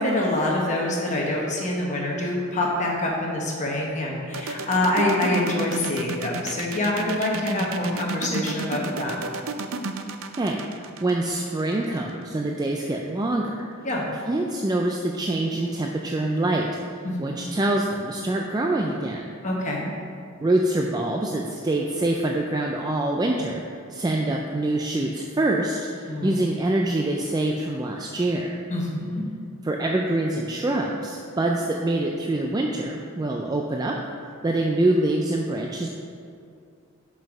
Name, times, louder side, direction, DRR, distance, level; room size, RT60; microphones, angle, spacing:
voice 1, 0.0-9.2 13.8-14.1 17.0-17.4 19.4-19.9 26.1-26.3 28.7-29.2, left 1 dB, 35° left, -2 dB, 1.0 m, -25 dB
sound 1, 4.3-12.1, right 4 dB, 70° right, 0.5 m, -32 dB
voice 2, 10.4-13.6 14.3-16.7 17.2-19.3 20.4-23.6 23.9-28.5 29.6-33.9 34.4-35.9, right 2 dB, 20° right, 0 dB, 0.3 m, -25 dB
5.5 x 5.5 x 6.0 m, 2.4 s
head